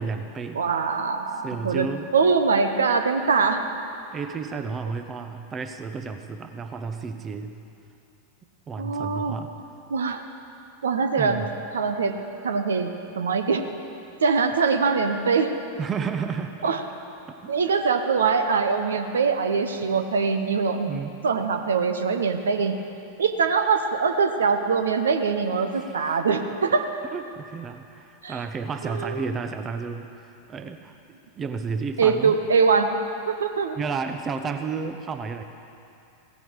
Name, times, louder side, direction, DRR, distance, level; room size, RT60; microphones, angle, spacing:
voice 1, 0.0-0.6 1.3-2.1 4.1-7.5 8.7-9.5 11.2-11.5 15.8-16.6 17.3-17.4 17.6-17.8 20.7-21.2 25.7-26.2 27.1-30.9 31.3-32.4 33.8-35.4, right 5 dB, 25° right, 8 dB, 0.8 m, -32 dB
voice 2, 0.5-1.9 2.1-3.6 8.8-9.4 9.9-10.2 10.8-11.4 11.7-12.2 12.4-13.7 14.2-15.5 16.6-16.8 17.5-20.9 21.2-22.7 23.2-26.9 28.2-28.4 28.9-29.2 32.0-32.9 33.3-33.8, right 5 dB, 65° right, 7 dB, 0.9 m, -23 dB
16.5 x 15.5 x 4.7 m, 2.6 s
figure-of-eight pair, 90°, 0 cm